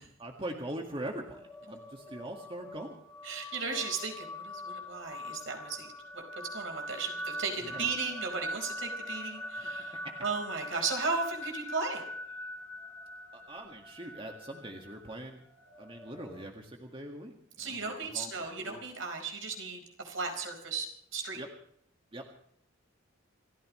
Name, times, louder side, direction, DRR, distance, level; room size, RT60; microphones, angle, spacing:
voice 1, 0.0-3.0 7.7-7.9 13.3-15.4 15.8-18.3 18.6-18.8 21.4-21.5 22.1-22.2, right 1 dB, 25° right, 2 dB, 1.9 m, -42 dB
sound 1, 1.3-16.4, left 1 dB, 5° left, 3.1 m, -43 dB
voice 2, 3.2-12.0 17.6-21.4, right 4 dB, 70° right, 3 dB, 4.8 m, -36 dB
28.5 x 15.0 x 3.2 m, 0.68 s
head